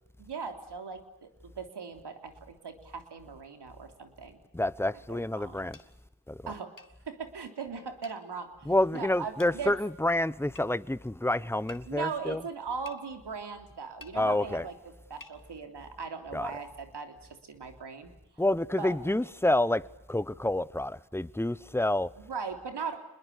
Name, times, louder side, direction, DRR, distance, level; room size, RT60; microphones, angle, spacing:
voice 1, 0.2-4.4 5.1-5.7 6.5-6.7 7.1-9.7 11.9-14.8 15.1-17.1 17.4-18.4 18.8-19.0 22.2-23.0, right 5 dB, 85° right, 3.5 m, -39 dB
voice 2, 4.5-5.8 6.3-6.5 8.7-12.4 14.1-14.6 16.3-16.5 18.4-22.1, left 1 dB, 5° left, 0.9 m, -28 dB
sound 1, 5.7-5.9 6.8-6.9 8.0-8.2 9.4-9.6 10.6-10.7 11.7-11.9 12.9-13.0 14.0-14.2 15.2-15.4, left 4 dB, 55° left, 2.6 m, -49 dB
27.0 x 21.5 x 8.4 m
cardioid pair, 45°, 40 cm